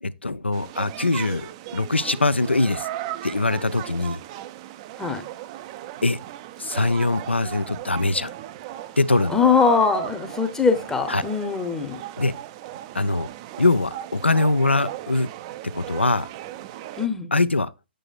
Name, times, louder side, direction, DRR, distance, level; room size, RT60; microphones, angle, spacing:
voice 1, 0.0-2.9 3.2-4.2 6.0-6.2 6.6-8.3 9.0-9.3 11.1-11.2 12.2-12.3 12.9-13.3 13.6-15.3 15.6-16.3 17.3-17.7, left 2 dB, 85° left, 0.4 m, -22 dB
sound 1, 0.5-17.1, right 13 dB, 30° right, 0.3 m, -36 dB
voice 2, 9.3-12.0 17.0-17.3, left 5 dB, 10° left, 0.7 m, -22 dB
7.6 x 6.5 x 2.4 m
figure-of-eight pair, 125°, 6 cm